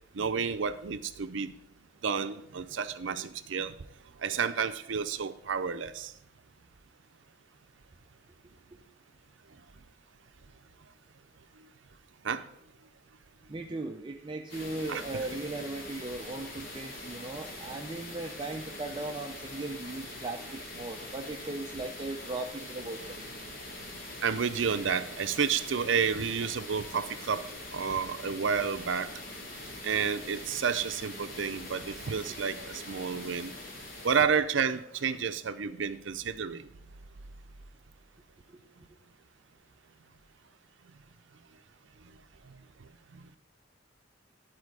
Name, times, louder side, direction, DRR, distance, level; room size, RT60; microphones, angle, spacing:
voice 1, 0.1-1.5 2.0-3.7 4.2-6.1 12.2-12.4 14.9-15.0 24.2-27.5 27.7-29.1 29.8-33.5 34.0-36.7 43.1-43.2, right 6 dB, 70° right, 11 dB, 0.6 m, -30 dB
voice 2, 13.5-23.2 38.5-38.6, right 2 dB, 25° right, 2 dB, 0.5 m, -38 dB
sound 1, 14.5-34.2, left 1 dB, 85° left, 1.9 m, -43 dB
11.5 x 4.4 x 4.7 m, 0.73 s
head